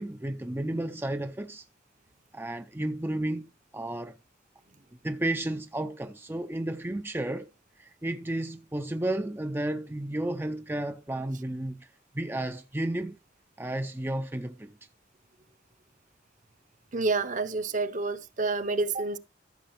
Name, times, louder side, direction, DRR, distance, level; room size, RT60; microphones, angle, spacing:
voice 1, 0.0-1.7 2.3-4.2 5.0-7.5 7.8-11.9 12.1-13.2 13.6-14.7, right 1 dB, 10° right, 0.5 m, -32 dB
voice 2, 16.9-19.2, right 3 dB, 45° right, 0.8 m, -28 dB
14.0 x 6.7 x 3.1 m
head